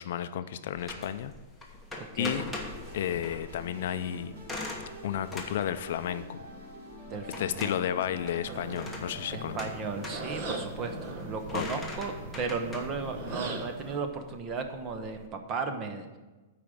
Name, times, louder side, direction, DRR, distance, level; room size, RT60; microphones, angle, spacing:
voice 1, 0.0-1.3 2.2-2.5 2.9-4.3 5.0-6.5 7.4-9.6 11.5-11.7, left 10 dB, 55° left, 12 dB, 0.5 m, -32 dB
sound 1, 0.8-15.3, left 2 dB, ahead, 1.0 m, -43 dB
voice 2, 2.0-2.4 7.1-7.8 9.3-16.2, right 4 dB, 20° right, 7 dB, 0.8 m, -35 dB
sound 2, 2.4-10.4, right 1 dB, 75° right, 2.9 m, -48 dB
sound 3, 8.5-14.0, right 2 dB, 40° right, 1.3 m, -40 dB
8.5 x 5.0 x 7.6 m, 1.2 s
supercardioid pair, 170°, 0 cm